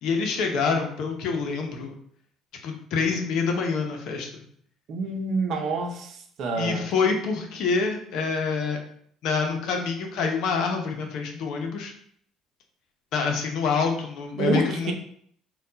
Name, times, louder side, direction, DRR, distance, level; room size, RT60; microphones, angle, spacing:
voice 1, 0.0-1.9 2.6-4.4 6.6-8.8 9.2-11.9 13.1-14.9, left 5 dB, 70° left, 3 dB, 0.8 m, -26 dB
voice 2, 4.9-6.8 14.4-14.9, right 3 dB, 60° right, 3 dB, 0.7 m, -27 dB
4.2 x 2.4 x 3.9 m, 0.63 s
supercardioid pair, 80°, 0 cm